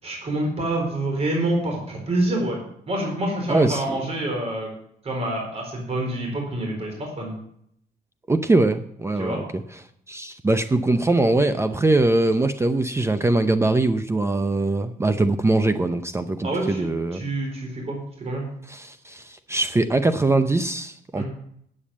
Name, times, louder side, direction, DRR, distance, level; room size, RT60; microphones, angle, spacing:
voice 1, 0.0-2.6 2.9-4.7 5.0-7.4 9.2-9.4 16.4-16.9 17.1-18.4 21.1-21.3, right 1 dB, 40° right, 0 dB, 4.3 m, -27 dB
voice 2, 3.5-3.8 8.3-9.6 10.1-17.2 18.7-21.3, right 2 dB, 15° right, 10 dB, 0.6 m, -22 dB
8.7 x 8.6 x 7.3 m, 0.69 s
cardioid pair, 110°, 16 cm